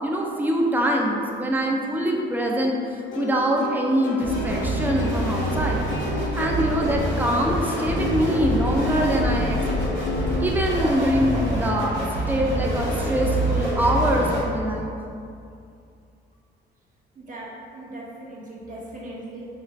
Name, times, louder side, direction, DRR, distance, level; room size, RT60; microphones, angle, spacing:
voice 1, 0.0-5.8 6.3-9.9 10.4-11.9 12.3-14.9, equal, 10° right, -1 dB, 0.4 m, -24 dB
Plucked string instrument, 3.1-10.5, left 1 dB, 70° left, 0.5 m, -32 dB
sound 1, 4.2-14.4, right 1 dB, 80° right, 1.3 m, -26 dB
voice 2, 17.2-19.4, right 1 dB, 40° right, -5 dB, 0.8 m, -39 dB
3.1 x 2.5 x 3.1 m, 2.4 s
cardioid pair, 90°, 20 cm